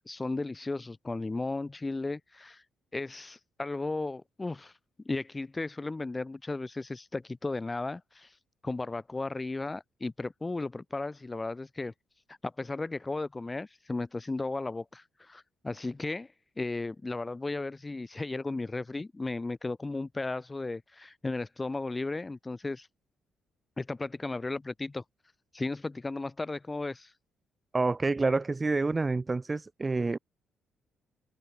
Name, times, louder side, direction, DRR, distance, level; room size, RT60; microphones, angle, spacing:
voice 1, 0.0-2.6 2.9-4.7 5.1-8.3 8.6-11.9 12.4-16.3 16.6-22.9 23.8-25.0 25.5-27.1, left 3 dB, 20° left, 2.4 m, -35 dB
voice 2, 27.7-30.2, right 3 dB, 25° right, 0.7 m, -28 dB
open air
cardioid pair, 90°, 0 cm